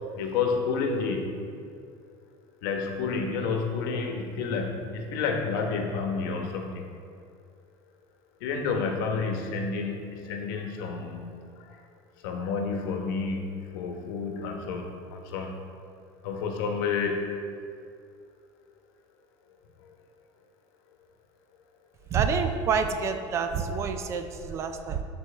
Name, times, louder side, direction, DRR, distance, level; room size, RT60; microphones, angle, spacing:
voice 1, 0.1-1.4 2.6-6.9 8.4-11.8 12.2-15.5 16.2-17.3 19.9-20.0, left 5 dB, 75° left, 2 dB, 1.1 m, -30 dB
voice 2, 22.1-25.0, right 6 dB, 25° right, 7 dB, 0.3 m, -27 dB
12.0 x 4.6 x 3.4 m, 2.4 s
cardioid pair, 175°, 11 cm